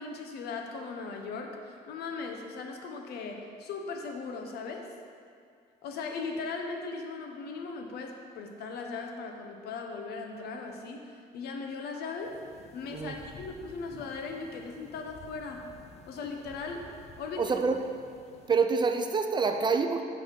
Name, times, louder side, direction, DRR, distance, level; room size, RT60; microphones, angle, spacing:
voice 1, 0.0-4.9 5.8-12.4 12.7-15.6 16.1-17.5, left 4 dB, 70° left, 3 dB, 0.9 m, -38 dB
sound 1, 12.2-18.6, left 3 dB, 40° left, 0.7 m, -53 dB
voice 2, 17.4-17.8 18.5-20.0, right 5 dB, 25° right, 6 dB, 0.4 m, -26 dB
5.8 x 5.1 x 5.2 m, 2.3 s
cardioid pair, 110°, 17 cm